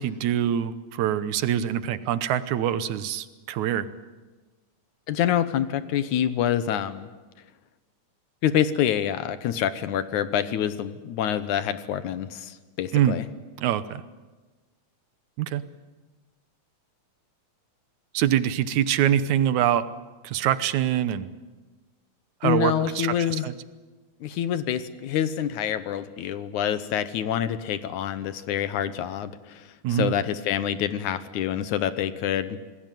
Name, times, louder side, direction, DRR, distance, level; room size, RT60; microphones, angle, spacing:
voice 1, 0.0-3.9 12.9-13.2 13.6-14.0 15.4-15.6 18.1-19.8 20.2-21.3 22.4-23.5 29.8-30.1, right 10 dB, 75° right, 13 dB, 2.3 m, -24 dB
voice 2, 5.1-7.1 8.4-13.2 22.4-23.5 24.2-32.6, left 10 dB, 75° left, 12 dB, 2.4 m, -26 dB
27.0 x 20.0 x 9.2 m, 1.3 s
omnidirectional pair, 3.6 m